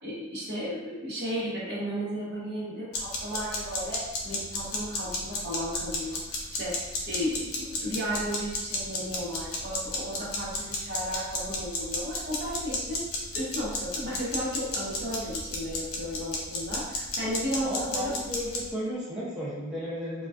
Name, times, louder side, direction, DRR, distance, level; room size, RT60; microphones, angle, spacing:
voice 1, 0.0-6.2 6.5-6.7 7.1-13.0 13.3-18.1, equal, 55° right, -8 dB, 0.9 m, -34 dB
sound 1, 2.9-18.7, left 2 dB, 80° left, 0.5 m, -33 dB
voice 2, 17.6-20.3, equal, 5° right, -10 dB, 0.5 m, -34 dB
2.3 x 2.3 x 2.3 m, 1.1 s
head